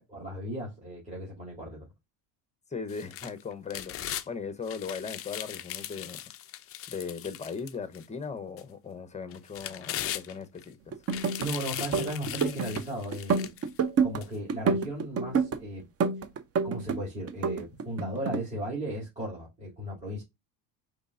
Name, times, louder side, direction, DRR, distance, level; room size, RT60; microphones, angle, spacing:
voice 1, 0.1-1.9 11.4-13.5 14.0-15.9 16.6-20.2, right 1 dB, 15° right, 2.5 m, -36 dB
voice 2, 2.7-6.2 6.9-10.9, left 5 dB, 15° left, 0.8 m, -38 dB
sound 1, 2.9-4.3 4.7-8.0 8.6-8.7 9.3-10.6 11.0-13.7 14.2-14.3, left 12 dB, 30° left, 0.3 m, -39 dB
sound 2, 10.9-11.5 11.8-12.8 13.1-14.2 14.5-15.6 16.0-17.0 17.3-18.4, right 5 dB, 30° right, 0.6 m, -27 dB
5.2 x 3.4 x 2.4 m
supercardioid pair, 110°, 50 cm